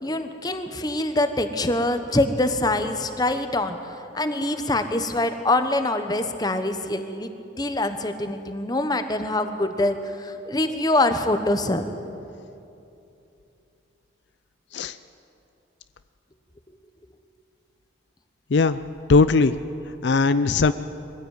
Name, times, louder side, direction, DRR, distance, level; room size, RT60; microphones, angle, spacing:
voice 1, 0.0-3.8 4.1-7.3 7.6-11.8, left 2 dB, 20° left, 8 dB, 1.1 m, -24 dB
voice 2, 19.1-19.6 20.0-20.7, left 4 dB, 70° left, 13 dB, 0.5 m, -18 dB
22.5 x 15.5 x 9.0 m, 2.8 s
head